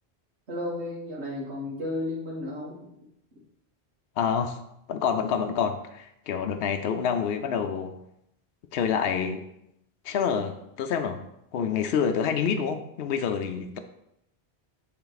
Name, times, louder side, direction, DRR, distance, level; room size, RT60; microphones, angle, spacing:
voice 1, 0.5-2.8, left 1 dB, 85° right, -7 dB, 1.9 m, -33 dB
voice 2, 4.2-4.6 4.9-8.0 8.7-9.4 10.0-11.3 11.5-13.8, left 7 dB, 70° left, 6 dB, 0.8 m, -27 dB
9.5 x 3.9 x 4.0 m, 0.79 s
omnidirectional pair, 1.1 m